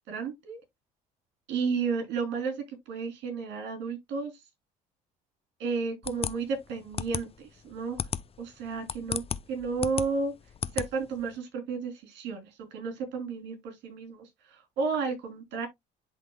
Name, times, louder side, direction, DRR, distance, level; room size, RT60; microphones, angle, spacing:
voice 1, 0.1-0.6 1.5-4.4 5.6-8.1 8.4-9.2 9.5-10.3 10.7-15.7, right 5 dB, 70° right, 3.0 m, -32 dB
sound 1, 6.0-11.4, left 7 dB, 30° left, 0.6 m, -35 dB
11.0 x 3.8 x 2.2 m
supercardioid pair, 70°, 19 cm